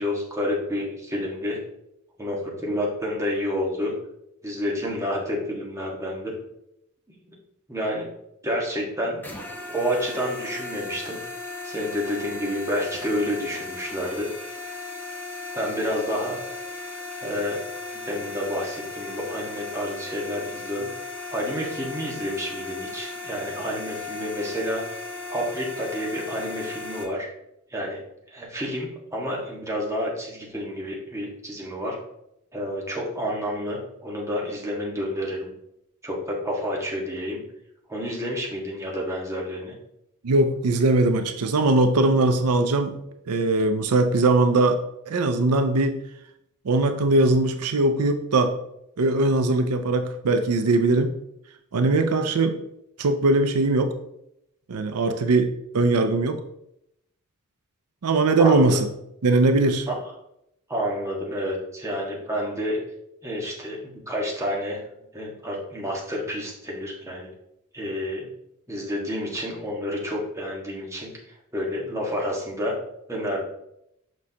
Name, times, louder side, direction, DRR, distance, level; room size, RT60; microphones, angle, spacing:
voice 1, 0.0-1.6 2.2-3.9 4.4-6.3 7.2-7.3 7.7-8.1 8.4-9.2 9.7-11.2 11.6-14.3 15.5-16.4 17.2-17.6 18.0-20.9 21.3-24.8 25.3-27.3 27.7-28.0 28.3-32.0 32.5-35.5 36.0-37.4 37.9-39.7 58.4-58.8 59.9-60.0 60.7-62.8 63.2-64.8 65.1-67.3 67.7-68.3 68.7-71.1 71.5-72.7 73.1-73.4, equal, 15° right, -3 dB, 1.5 m, -29 dB
sound 1, 9.2-27.0, left 3 dB, 10° left, 0.9 m, -36 dB
voice 2, 40.2-43.0 43.3-44.8 45.1-46.0 46.6-48.5 49.0-51.2 51.7-52.6 53.0-53.9 54.7-56.4 58.0-58.9 59.2-59.9, right 2 dB, 85° right, 8 dB, 0.5 m, -20 dB
6.2 x 6.1 x 2.8 m, 0.79 s
head